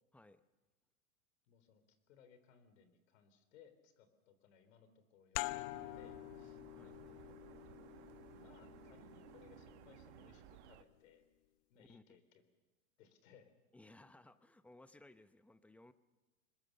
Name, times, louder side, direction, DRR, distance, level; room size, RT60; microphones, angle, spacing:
voice 1, 1.5-7.4 8.3-11.2 11.7-12.4 13.0-13.5, left 7 dB, 65° left, 10 dB, 3.8 m, -65 dB
sound 1, 5.3-10.6, left 20 dB, 40° left, 0.7 m, -47 dB
sound 2, 5.7-10.8, right 15 dB, 55° right, 1.2 m, -59 dB
voice 2, 13.7-15.9, left 2 dB, 5° left, 13 dB, 0.7 m, -61 dB
25.5 x 21.5 x 6.6 m, 1.2 s
hypercardioid pair, 115°, 42 cm